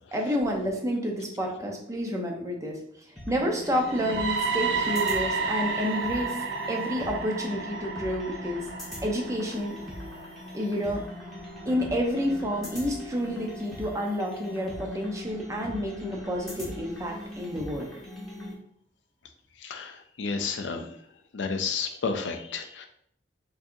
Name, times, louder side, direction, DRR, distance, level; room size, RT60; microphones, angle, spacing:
voice 1, 0.1-6.4 6.7-8.6 9.0-9.7 10.5-11.0 11.7-17.9, equal, 15° right, 1 dB, 0.7 m, -29 dB
sound 1, 3.2-18.5, left 1 dB, ahead, 1.3 m, -41 dB
sound 2, 3.7-11.6, right 5 dB, 90° right, 0.5 m, -32 dB
voice 2, 19.6-20.9 21.3-22.9, left 5 dB, 85° left, 6 dB, 0.5 m, -31 dB
4.6 x 2.8 x 2.7 m, 0.66 s
head